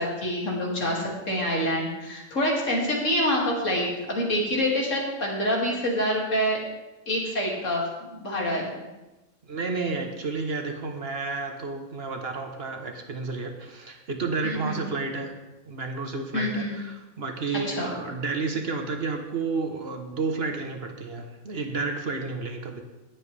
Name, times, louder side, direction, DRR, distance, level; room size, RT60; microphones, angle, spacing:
voice 1, 0.0-6.6 7.1-8.7 14.4-14.8 16.3-16.7 17.7-17.9, equal, 70° left, -3 dB, 2.9 m, -26 dB
voice 2, 9.4-15.3 15.7-22.8, right 4 dB, 50° right, 4 dB, 1.2 m, -31 dB
19.0 x 7.5 x 3.4 m, 1.1 s
omnidirectional pair, 1.3 m